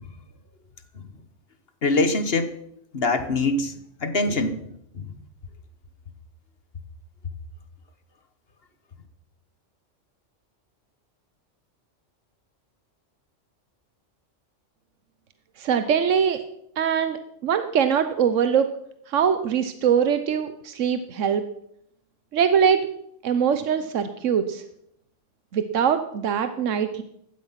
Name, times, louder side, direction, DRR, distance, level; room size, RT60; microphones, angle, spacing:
voice 1, 1.8-2.5 2.9-4.7 5.0-5.1, left 2 dB, 55° left, 10 dB, 1.6 m, -24 dB
voice 2, 15.6-16.4 16.8-18.7 19.1-21.4 22.3-22.9 23.2-24.6 25.5-27.0, right 7 dB, 85° right, 9 dB, 1.2 m, -22 dB
16.0 x 12.5 x 5.9 m, 0.73 s
omnidirectional pair, 1.3 m